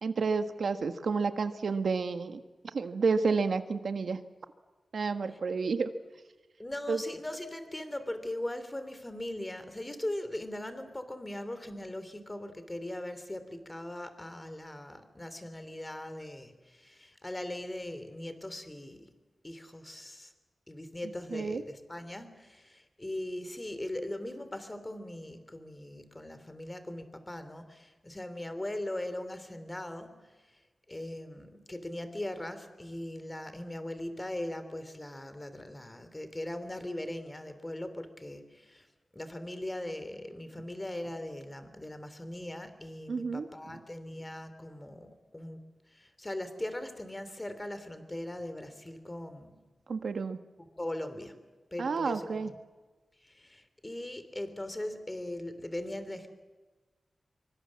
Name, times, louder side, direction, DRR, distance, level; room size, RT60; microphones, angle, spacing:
voice 1, 0.0-2.4 2.7-4.2 4.9-5.9 6.9-7.0 21.3-21.6 43.1-43.5 49.9-50.4 51.8-52.5, right 4 dB, 75° right, 8 dB, 1.6 m, -30 dB
voice 2, 6.6-19.1 19.4-20.3 20.7-30.3 30.9-38.9 39.1-45.6 45.9-49.7 50.8-51.4 51.7-52.5 53.2-56.3, left 1 dB, 20° left, 10 dB, 3.2 m, -40 dB
25.0 x 24.5 x 7.6 m, 1.3 s
wide cardioid pair, 110°, 0 cm